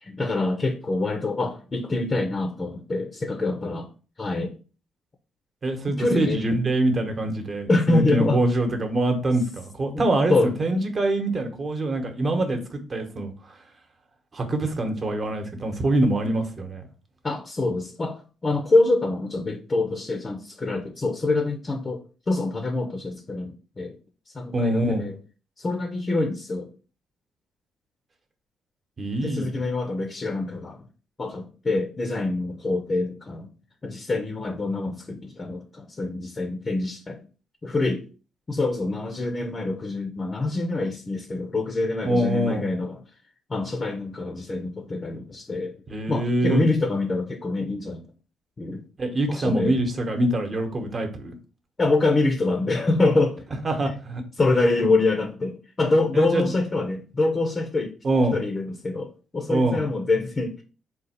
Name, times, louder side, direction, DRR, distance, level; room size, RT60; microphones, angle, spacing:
voice 1, 0.0-3.9 4.2-4.5 6.0-6.4 7.7-8.4 9.9-10.5 17.2-22.0 22.3-24.0 24.3-25.2 25.6-26.7 29.2-30.9 31.2-33.5 33.8-37.2 37.6-38.0 38.5-43.0 43.5-45.7 46.1-48.0 48.6-48.8 49.3-49.8 51.8-53.5 54.4-57.9 58.3-60.6, left 2 dB, 30° left, 0.6 m, -25 dB
voice 2, 5.6-13.6 14.3-16.8 24.5-25.1 29.0-29.5 42.0-42.7 45.9-46.6 49.0-51.3 53.6-54.2 56.1-56.5 58.0-58.4 59.5-59.8, right 1 dB, 35° right, 1.0 m, -24 dB
3.9 x 2.4 x 4.2 m
cardioid pair, 90°, 0 cm